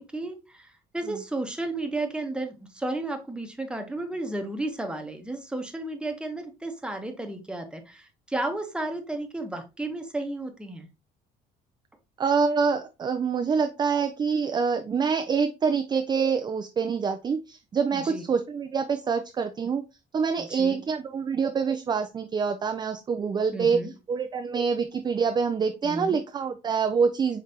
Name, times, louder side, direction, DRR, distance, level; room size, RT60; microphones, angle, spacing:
voice 1, 0.0-10.9 17.9-18.2 20.4-20.8 23.5-23.9 25.8-26.2, right 2 dB, 5° right, 4 dB, 0.9 m, -33 dB
voice 2, 12.2-19.8 20.1-23.8 24.1-27.4, right 5 dB, 25° right, 7 dB, 0.4 m, -26 dB
5.0 x 3.3 x 2.8 m, 0.28 s
cardioid pair, 110°, 17 cm